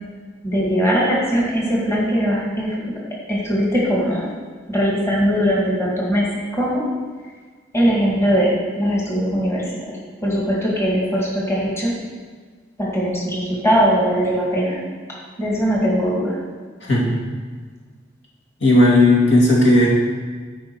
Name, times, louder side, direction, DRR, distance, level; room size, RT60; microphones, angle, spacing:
voice 1, 0.4-2.7 3.3-4.3 4.7-6.8 7.7-9.8 10.2-11.9 12.8-14.8 15.4-16.4, equal, 15° left, -5 dB, 2.0 m, -20 dB
voice 2, 18.6-19.9, left 1 dB, 70° left, -5 dB, 2.6 m, -14 dB
14.0 x 5.1 x 4.7 m, 1.5 s
head